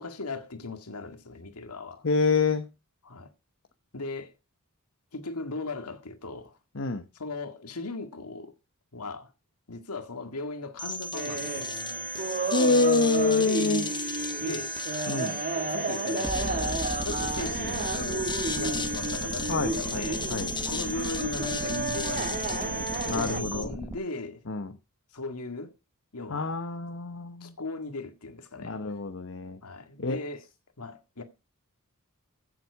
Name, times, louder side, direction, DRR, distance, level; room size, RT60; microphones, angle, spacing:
voice 1, 0.0-2.0 3.0-3.3 3.9-4.3 5.1-6.6 7.1-8.5 8.9-9.3 9.7-11.7 14.4-14.8 15.5-16.8 17.0-20.3 20.7-24.4 25.1-25.7 26.1-26.6 27.4-28.8 29.6-30.4 30.8-31.2, left 3 dB, 90° left, 1.9 m, -38 dB
voice 2, 2.0-2.7 6.8-7.1 12.5-13.9 15.1-15.4 19.5-20.5 23.0-23.7 24.5-24.7 26.3-27.5 28.6-29.6 30.0-30.2, left 3 dB, 60° left, 1.0 m, -26 dB
sound 1, 10.8-23.7, left 2 dB, 20° left, 1.5 m, -35 dB
sound 2, 11.1-23.4, right 3 dB, 40° right, 1.4 m, -33 dB
sound 3, 16.2-24.0, right 1 dB, 10° right, 0.8 m, -37 dB
15.0 x 7.7 x 4.8 m
head